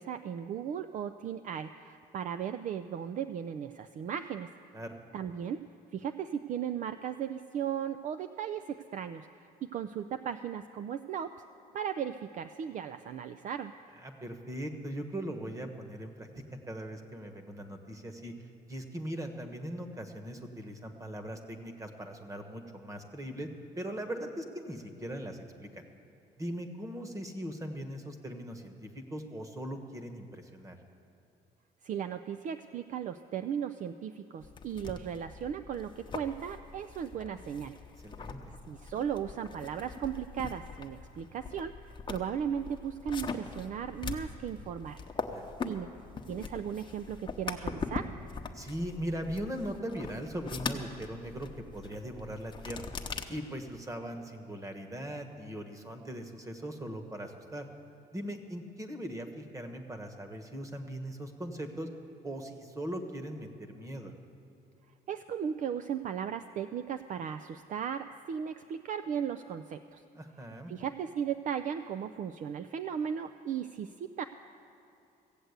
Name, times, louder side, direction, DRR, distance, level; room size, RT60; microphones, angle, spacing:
voice 1, 0.0-4.5 5.1-5.6 5.9-9.3 9.6-11.3 11.7-13.7 31.8-37.7 38.7-41.7 42.1-45.0 45.6-45.9 46.3-48.1 65.1-70.0 70.7-74.2, right 8 dB, 50° right, 9 dB, 0.4 m, -36 dB
voice 2, 14.0-18.3 18.7-23.5 23.8-25.8 26.4-30.8 38.0-38.4 44.2-44.5 45.2-45.5 48.5-52.9 53.3-57.7 58.1-61.9 62.2-64.1 70.1-70.7, right 1 dB, 20° right, 6 dB, 1.3 m, -40 dB
sound 1, 34.4-53.2, left 5 dB, 30° left, 0.9 m, -42 dB
15.5 x 7.9 x 8.1 m, 2.7 s
cardioid pair, 110°, 17 cm